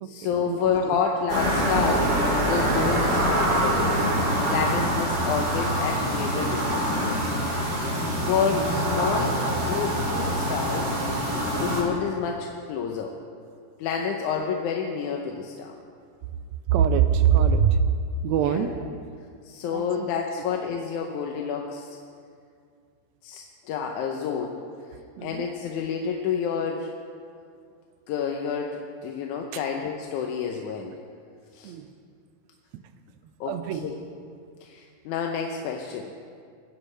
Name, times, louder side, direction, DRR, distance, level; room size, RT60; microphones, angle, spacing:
voice 1, 0.0-4.0 4.5-7.2 8.2-9.4 9.7-10.9 11.5-13.1 13.8-15.8 18.4-18.7 19.5-22.0 23.2-24.6 25.2-26.9 28.1-30.9 31.5-31.7 33.4-33.9 34.6-36.1, left 6 dB, 85° left, 1 dB, 2.2 m, -29 dB
sound 1, 1.3-11.8, right 1 dB, 35° right, 3.4 m, -25 dB
voice 2, 8.5-8.8 16.7-17.8 18.2-18.9 19.7-20.1 25.2-25.5 29.5-29.6 31.6-31.9 32.7-32.8 33.4-33.9, right 8 dB, 80° right, 9 dB, 1.8 m, -23 dB
22.0 x 11.5 x 3.3 m, 2.2 s
omnidirectional pair, 3.4 m